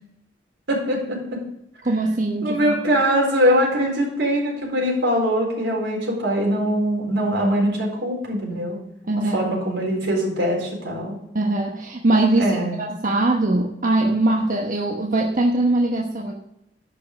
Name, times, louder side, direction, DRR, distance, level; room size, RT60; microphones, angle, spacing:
voice 1, 0.7-1.4 2.4-8.8 9.3-11.2 12.4-12.8, equal, 85° right, -1 dB, 4.2 m, -22 dB
voice 2, 1.8-3.0 9.1-9.5 11.3-12.5 12.8-16.3, right 2 dB, 50° right, 0 dB, 1.1 m, -21 dB
12.0 x 5.6 x 6.5 m, 0.79 s
head